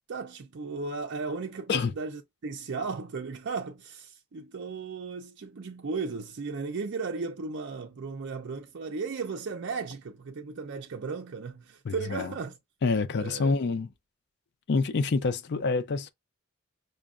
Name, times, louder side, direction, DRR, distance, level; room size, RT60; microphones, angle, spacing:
voice 1, 0.1-12.6 13.1-13.8, right 4 dB, 55° right, 0.4 m, -36 dB
voice 2, 11.9-12.3 12.8-13.9 14.7-16.1, left 4 dB, 50° left, 0.4 m, -27 dB
6.0 x 2.1 x 2.4 m
head